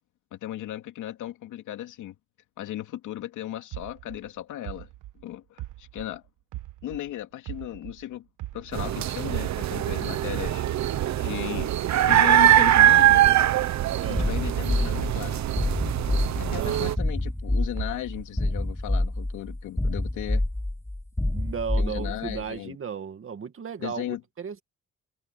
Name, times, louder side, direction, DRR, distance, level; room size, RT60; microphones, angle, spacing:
voice 1, 0.3-2.1 2.6-4.9 5.2-6.2 6.8-8.3 8.5-10.7 11.2-11.7 12.1-13.2 14.1-15.4 16.4-20.4 21.8-22.8 23.8-24.2, left 13 dB, 85° left, 2.7 m, -36 dB
sound 1, 3.7-7.1 7.5-9.9 10.3-14.6 15.0-17.4 17.8-18.5, right 16 dB, 85° right, 1.4 m, -40 dB
sound 2, 8.7-17.0, right 12 dB, 65° right, 1.2 m, -22 dB
voice 2, 14.0-14.3 16.4-16.8 21.3-24.0 24.4-24.6, right 7 dB, 45° right, 2.3 m, -35 dB
sound 3, 14.2-22.4, left 1 dB, 10° left, 3.1 m, -27 dB
cardioid pair, 90°, 30 cm